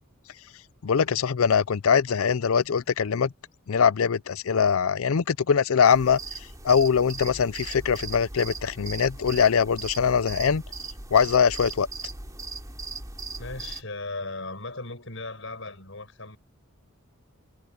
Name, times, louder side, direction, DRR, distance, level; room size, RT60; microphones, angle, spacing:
voice 1, 0.8-3.3 3.7-6.2 6.6-10.6 11.1-11.9, left 6 dB, 80° left, 0.5 m, -22 dB
sound 1, 5.9-13.8, right 3 dB, 15° right, 2.9 m, -38 dB
voice 2, 13.4-16.4, left 3 dB, 65° left, 7.8 m, -37 dB
head